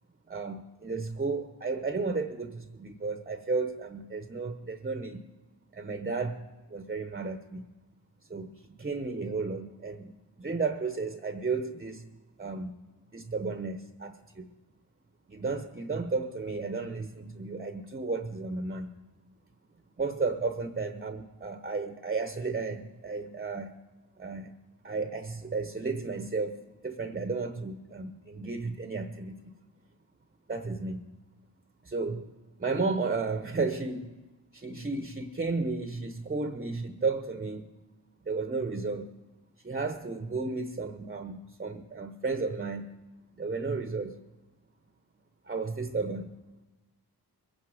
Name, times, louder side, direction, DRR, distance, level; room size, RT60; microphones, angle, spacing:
voice 1, 0.3-5.2 5.7-7.6 8.3-8.5 8.8-12.1 12.4-12.7 13.1-14.5 15.3-18.9 20.0-23.7 24.2-24.5 24.8-29.5 30.5-31.0 31.8-32.3 32.6-34.1 34.5-37.8 38.2-39.1 39.6-42.9 43.4-44.2 45.5-46.3, right 4 dB, 25° right, 8 dB, 0.9 m, -33 dB
22.5 x 9.6 x 4.9 m, 1.1 s
cardioid pair, 75°, 40 cm